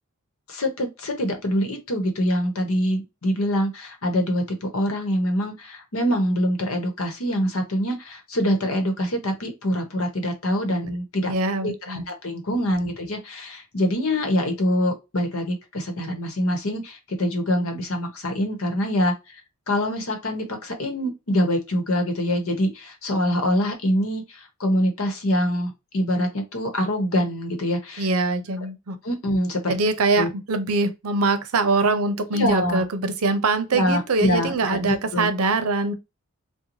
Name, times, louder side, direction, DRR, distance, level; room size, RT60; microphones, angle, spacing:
voice 1, 0.5-11.3 11.6-19.1 19.7-28.1 29.0-29.8 30.2-30.3 32.3-32.8 33.7-35.3, equal, 70° left, 1.0 m, -25 dB
voice 2, 11.3-12.0 28.0-29.0 29.7-35.9, right 3 dB, 85° right, 0.6 m, -23 dB
3.8 x 2.2 x 2.9 m
head